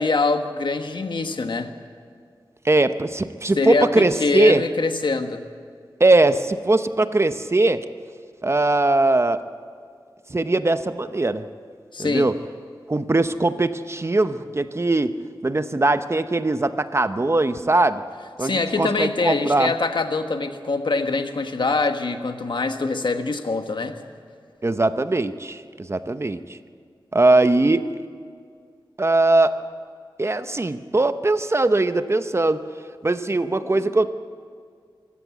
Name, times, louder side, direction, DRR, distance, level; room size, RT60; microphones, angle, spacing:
voice 1, 0.0-1.7 3.6-5.4 11.9-12.3 18.4-24.0 33.6-33.9, left 3 dB, 65° left, 7 dB, 1.4 m, -24 dB
voice 2, 2.6-4.6 6.0-7.8 8.4-9.4 10.3-11.4 12.0-12.3 12.9-15.2 15.4-18.0 18.4-19.7 24.6-26.6 27.1-27.9 29.0-29.5 30.2-32.6 33.0-34.1, right 2 dB, 30° right, 11 dB, 0.8 m, -20 dB
24.5 x 15.0 x 8.3 m, 2.2 s
wide cardioid pair, 95°, 9 cm